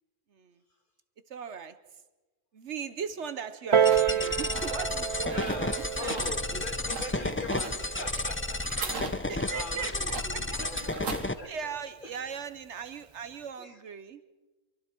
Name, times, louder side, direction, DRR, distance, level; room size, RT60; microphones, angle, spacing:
voice 1, 0.3-0.6 1.3-2.0 2.5-6.4 9.3-10.6 11.4-14.2, right 6 dB, 65° right, 12 dB, 1.1 m, -39 dB
Piano, 3.7-8.9 9.7-9.8, right 8 dB, 35° right, 0.5 m, -30 dB
sound 1, 3.7-11.3, right 4 dB, 90° right, 2.0 m, -41 dB
sound 2, 3.9-11.3, left 2 dB, 15° left, 0.4 m, -32 dB
voice 2, 5.3-11.8 12.0-12.2 13.6-13.8, left 2 dB, 40° left, 5 dB, 2.3 m, -41 dB
28.0 x 23.5 x 4.5 m, 1.2 s
omnidirectional pair, 1.3 m